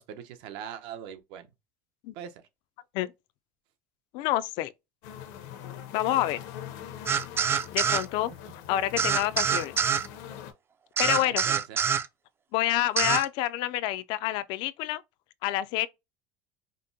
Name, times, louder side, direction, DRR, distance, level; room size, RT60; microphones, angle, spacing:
voice 1, 0.0-1.5 2.1-2.4 11.0-11.8, right 9 dB, 70° right, 0.9 m, -41 dB
voice 2, 4.1-4.7 5.9-6.4 7.7-8.3 8.7-9.7 11.0-11.4 12.5-15.0 15.4-15.9, left 14 dB, 70° left, 0.4 m, -28 dB
sound 1, 5.0-10.5, left 10 dB, 85° left, 0.8 m, -42 dB
sound 2, 7.1-8.0 9.0-10.1 11.0-12.1 13.0-13.3, right 7 dB, 25° right, 0.4 m, -25 dB
5.1 x 2.1 x 2.7 m
supercardioid pair, 120°, 9 cm